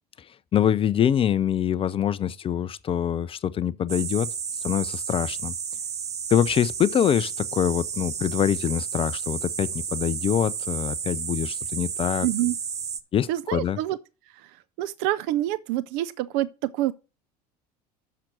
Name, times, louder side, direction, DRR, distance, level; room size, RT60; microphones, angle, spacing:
voice 1, 0.5-4.3 4.6-5.5 6.3-12.3 13.1-13.8, left 9 dB, 25° left, 0.4 m, -24 dB
sound 1, 3.9-13.0, right 7 dB, 35° right, 1.0 m, -32 dB
voice 2, 12.2-12.6 13.3-14.0 14.3-14.5 14.8-16.9, right 14 dB, 55° right, 0.5 m, -27 dB
6.6 x 5.8 x 6.1 m
figure-of-eight pair, 70°, 21 cm